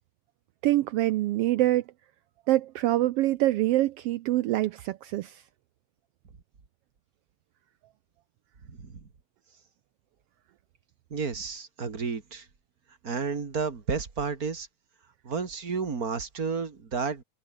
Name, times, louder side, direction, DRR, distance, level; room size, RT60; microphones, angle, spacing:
voice 1, 0.6-1.8 2.5-5.4, right 16 dB, 85° right, 1.3 m, -25 dB
voice 2, 8.7-9.1 11.1-12.5 13.0-14.7 15.2-17.2, right 5 dB, 30° right, 2.6 m, -31 dB
omnidirectional pair, 3.5 m